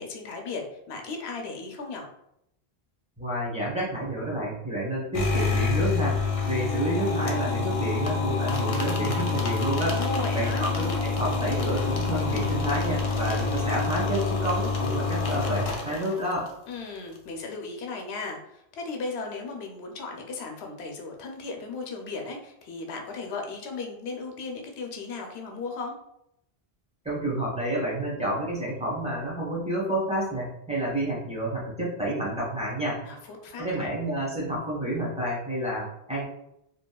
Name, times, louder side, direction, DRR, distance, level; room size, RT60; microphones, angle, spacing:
voice 1, 0.0-2.1 9.9-10.6 16.7-25.9 33.0-33.9, left 3 dB, 85° left, 2 dB, 0.8 m, -36 dB
voice 2, 3.2-6.2 6.5-10.0 10.3-16.5 27.0-33.0 33.6-36.2, right 1 dB, 5° right, -6 dB, 0.7 m, -29 dB
sound 1, 5.1-16.5, left 4 dB, 55° left, 0.4 m, -27 dB
2.8 x 2.3 x 2.2 m, 0.78 s
omnidirectional pair, 1.1 m